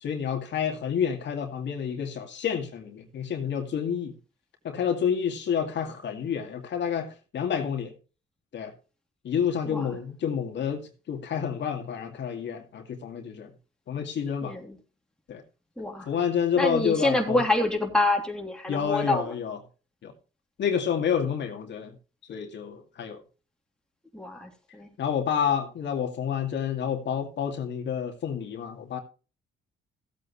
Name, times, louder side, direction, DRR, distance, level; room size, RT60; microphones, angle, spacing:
voice 1, 0.0-4.1 4.6-7.9 8.5-8.7 9.2-13.5 13.9-14.5 15.3-15.4 16.1-17.4 18.7-19.6 20.0-20.1 20.6-21.9 22.3-23.2 25.0-29.0, left 7 dB, 65° left, 2.3 m, -29 dB
voice 2, 9.6-10.0 14.4-14.8 15.8-16.1 16.6-19.2 24.1-24.9, left 2 dB, 5° left, 3.0 m, -27 dB
15.5 x 8.5 x 3.1 m
cardioid pair, 90°, 20 cm